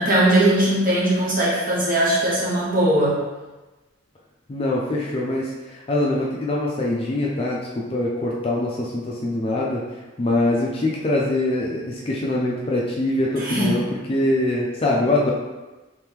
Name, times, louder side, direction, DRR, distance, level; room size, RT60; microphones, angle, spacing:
voice 1, 0.0-3.2 13.4-13.7, right 1 dB, 45° right, -7 dB, 1.2 m, -19 dB
voice 2, 4.5-9.8 10.2-15.3, left 1 dB, 30° left, -3 dB, 0.4 m, -23 dB
3.2 x 3.0 x 3.5 m, 1.2 s
head